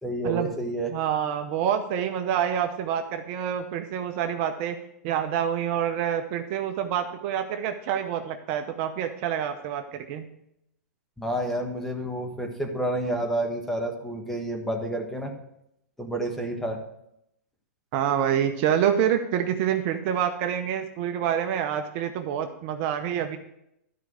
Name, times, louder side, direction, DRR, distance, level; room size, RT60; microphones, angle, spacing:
voice 1, 0.0-0.9 11.2-15.3 16.0-16.8, right 1 dB, 5° left, 2 dB, 1.3 m, -29 dB
voice 2, 0.9-4.8 5.0-10.3 17.9-23.4, right 9 dB, 40° right, 6 dB, 0.8 m, -27 dB
12.5 x 4.7 x 6.3 m, 0.78 s
hypercardioid pair, 135°, 9 cm